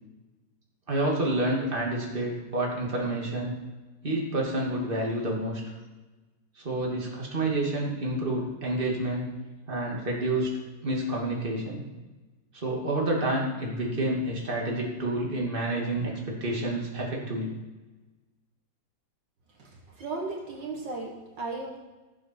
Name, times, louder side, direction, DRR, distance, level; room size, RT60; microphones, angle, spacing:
voice 1, 0.9-3.5 4.0-5.6 6.6-9.3 9.7-10.5 10.8-11.8 12.5-17.5, right 1 dB, 30° right, -2 dB, 2.7 m, -29 dB
voice 2, 19.6-21.8, right 3 dB, 70° right, 0 dB, 2.4 m, -36 dB
18.0 x 7.6 x 4.6 m, 1.2 s
omnidirectional pair, 2.0 m